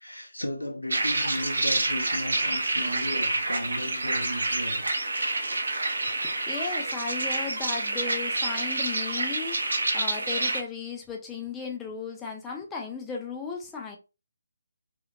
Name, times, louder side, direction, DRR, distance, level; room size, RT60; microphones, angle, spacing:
voice 1, 0.0-5.7 5.9-6.3, equal, 85° left, 1.0 m, -36 dB
sound 1, 0.9-10.6, right 2 dB, 65° right, 0.6 m, -28 dB
voice 2, 6.2-14.0, left 5 dB, 10° left, 0.4 m, -36 dB
2.9 x 2.7 x 2.6 m
figure-of-eight pair, 145°, 0 cm